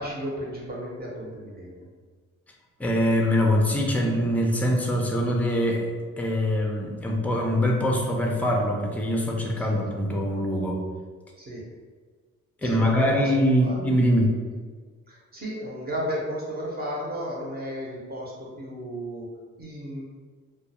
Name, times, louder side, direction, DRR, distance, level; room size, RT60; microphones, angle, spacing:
voice 1, 0.0-1.9 9.6-9.8 11.4-11.6 12.6-13.3 13.6-13.8 15.1-19.2 19.6-20.0, equal, 30° right, -3 dB, 0.7 m, -34 dB
voice 2, 2.8-5.9 6.2-10.8 12.6-14.3, equal, 5° left, 0 dB, 0.4 m, -23 dB
2.3 x 2.2 x 2.8 m, 1.5 s
cardioid pair, 90°, 30 cm